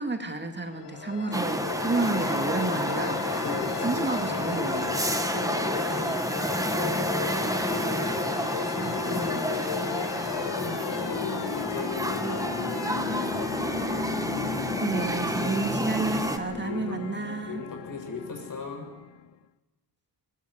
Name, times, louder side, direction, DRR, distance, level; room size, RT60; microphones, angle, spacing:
voice 1, 0.0-3.5 3.8-5.0 9.0-9.4 14.8-17.6, right 3 dB, 25° right, 5 dB, 2.2 m, -31 dB
sound 1, 0.7-19.3, left 11 dB, 90° left, 0.7 m, -34 dB
sound 2, 1.3-16.4, right 1 dB, 10° right, 1.4 m, -30 dB
voice 2, 3.3-4.0 5.3-5.5 5.9-10.0 10.5-13.7 16.5-16.9 17.5-18.9, left 3 dB, 50° left, 4 dB, 6.6 m, -38 dB
21.5 x 21.0 x 9.6 m, 1.2 s
wide cardioid pair, 155°, 40 cm